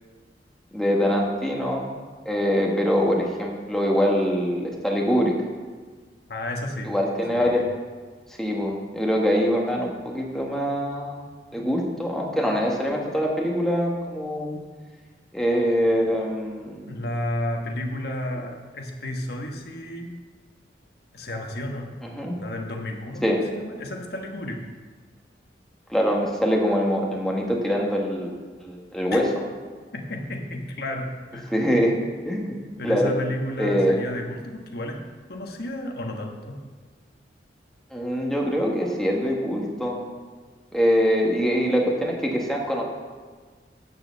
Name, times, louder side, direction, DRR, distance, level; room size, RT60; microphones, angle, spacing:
voice 1, 0.7-1.9 2.2-5.3 6.8-7.6 8.4-11.3 11.5-14.6 15.3-17.0 22.0-22.4 23.2-23.4 25.9-28.3 28.6-29.2 31.5-32.0 32.2-32.6 32.8-33.1 33.6-34.0 37.9-40.1 40.7-42.8, equal, 5° left, -1 dB, 1.4 m, -24 dB
voice 2, 6.3-6.9 7.3-7.7 16.9-20.1 21.1-21.9 22.3-24.6 29.1-29.2 29.9-31.5 32.8-35.0 35.3-36.6, left 1 dB, 60° left, 2 dB, 1.3 m, -32 dB
8.6 x 6.8 x 6.9 m, 1.5 s
head